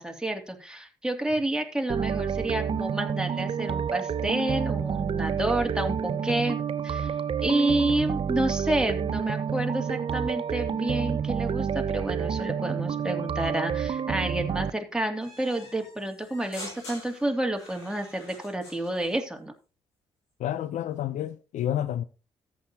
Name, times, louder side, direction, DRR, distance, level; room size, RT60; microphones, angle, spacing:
voice 1, 0.0-7.1 7.4-19.5, right 1 dB, 5° right, 2.5 m, -29 dB
sound 1, 1.9-14.7, right 7 dB, 40° right, 0.6 m, -29 dB
sound 2, 15.2-19.2, left 2 dB, 90° left, 4.6 m, -45 dB
voice 2, 20.4-22.0, left 11 dB, 60° left, 0.6 m, -29 dB
14.0 x 8.5 x 2.8 m
hypercardioid pair, 45°, 14 cm